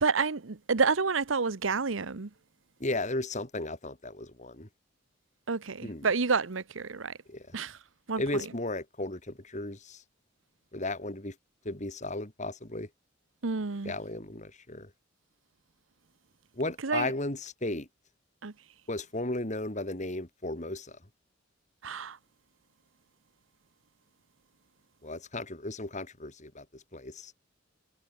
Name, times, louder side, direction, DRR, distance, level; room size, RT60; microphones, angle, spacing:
voice 1, 0.0-2.3 5.5-7.2 7.5-7.8 8.1-8.4 13.4-13.9 16.8-17.1 18.4-18.5 21.8-22.2, right 4 dB, 80° right, 1.0 m, -29 dB
voice 2, 2.8-4.7 5.8-6.1 7.3-7.6 8.2-10.0 10.7-11.3 11.6-12.9 13.8-14.9 16.5-17.9 18.9-21.0 25.0-27.3, left 2 dB, 35° left, 3.4 m, -35 dB
head